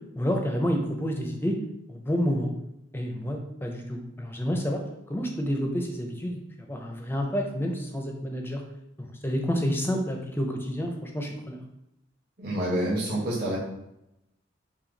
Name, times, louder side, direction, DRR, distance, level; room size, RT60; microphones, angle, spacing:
voice 1, 0.1-1.6 1.9-2.5 2.9-4.8 5.1-8.6 9.0-11.6, equal, 10° left, 2 dB, 0.5 m, -29 dB
voice 2, 12.4-13.6, right 1 dB, 50° right, -6 dB, 1.3 m, -27 dB
5.7 x 2.3 x 3.9 m, 0.86 s
head